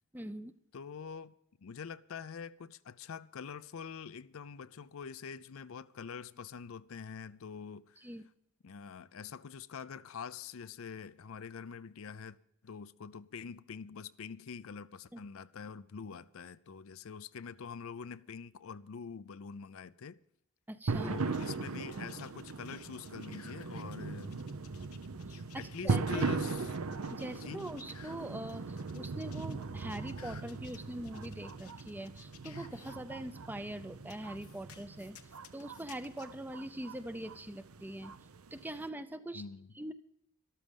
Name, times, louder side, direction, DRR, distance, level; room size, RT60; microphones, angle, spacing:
voice 1, 0.1-0.5 8.0-8.2 15.1-15.2 20.7-21.2 25.3-26.3 27.1-35.2 35.5-38.1 38.5-39.4 39.8-39.9, right 1 dB, 10° right, 0.5 m, -43 dB
voice 2, 0.7-1.3 1.6-8.0 8.6-12.4 12.6-20.2 21.0-24.4 25.5-26.8 27.3-27.6 39.3-39.7, left 6 dB, 70° left, 0.5 m, -45 dB
sound 1, 20.9-38.9, right 4 dB, 75° right, 0.7 m, -39 dB
sound 2, 21.3-33.0 34.1-36.3, left 8 dB, 85° left, 1.1 m, -57 dB
13.5 x 12.5 x 5.3 m
head